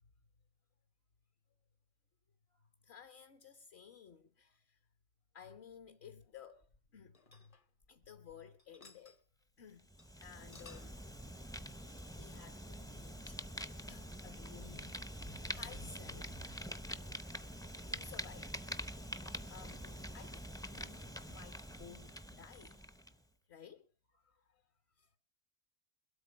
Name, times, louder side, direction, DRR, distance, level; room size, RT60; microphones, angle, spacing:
voice 1, 2.5-4.8 5.3-7.5 7.9-9.2 9.6-9.9 10.2-10.9 12.0-13.4 13.9-16.6 17.9-18.5 19.5-21.0 21.3-22.9 23.5-23.9 24.1-24.6 25.0-25.2, left 7 dB, 60° left, 1.2 m, -56 dB
sound 1, 6.6-8.3 8.6-9.2 9.6-9.7 10.0-10.1 10.3-11.0, left 3 dB, 35° left, 0.8 m, -60 dB
Fire, 9.8-23.2, equal, 5° left, 0.4 m, -46 dB
22.0 x 8.6 x 5.0 m
omnidirectional pair, 1.3 m